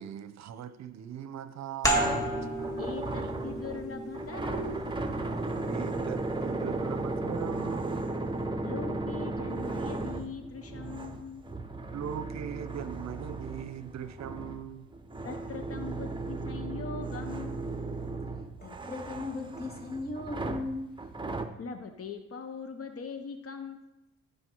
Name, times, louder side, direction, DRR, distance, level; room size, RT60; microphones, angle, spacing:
voice 1, 0.0-2.2 5.6-8.0 11.9-14.9, right 9 dB, 60° right, 0.7 m, -40 dB
sound 1, 1.8-7.1, right 1 dB, 10° left, 2.4 m, -34 dB
sound 2, 1.9-21.5, right 2 dB, 15° right, 1.0 m, -36 dB
voice 2, 2.8-4.9 8.6-11.4 15.2-17.7 21.6-24.0, left 5 dB, 50° left, 1.0 m, -41 dB
voice 3, 18.6-20.9, left 3 dB, 30° left, 2.6 m, -37 dB
15.5 x 5.3 x 4.6 m
cardioid pair, 90°, 30 cm